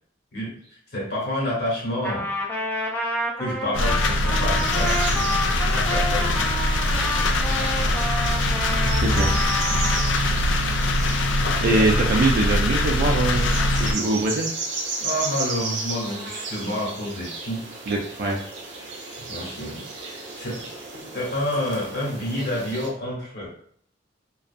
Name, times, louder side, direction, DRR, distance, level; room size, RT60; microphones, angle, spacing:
voice 1, 0.3-2.3 3.4-5.3 5.7-6.4 7.0-7.3 7.5-8.1 10.1-10.3 11.4-11.6 15.0-17.7 19.1-20.6 20.9-23.5, left 1 dB, 60° left, -5 dB, 1.1 m, -29 dB
Trumpet, 2.0-10.1, equal, 10° left, 0.4 m, -29 dB
sound 1, 3.7-13.9, left 1 dB, 80° left, 0.4 m, -22 dB
sound 2, 4.6-22.9, right 3 dB, 85° right, 0.7 m, -35 dB
voice 2, 9.0-9.3 11.6-13.5 13.8-14.5 17.9-18.4, right 2 dB, 55° right, 1 dB, 0.3 m, -23 dB
2.5 x 2.2 x 2.5 m, 0.62 s
head